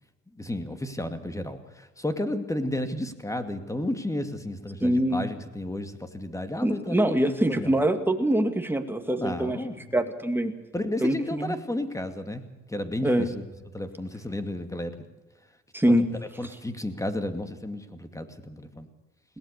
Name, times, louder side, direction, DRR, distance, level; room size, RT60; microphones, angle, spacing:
voice 1, 0.3-7.7 9.2-9.9 10.7-13.4 13.7-15.0 15.9-16.0 16.4-18.9, left 1 dB, 10° left, 8 dB, 2.4 m, -32 dB
voice 2, 4.8-5.3 6.6-9.6 9.9-10.5 11.0-11.5 13.0-13.3 15.7-16.1, right 1 dB, 5° right, 6 dB, 2.4 m, -24 dB
21.5 x 18.0 x 6.8 m, 1.1 s
cardioid pair, 90°, 30 cm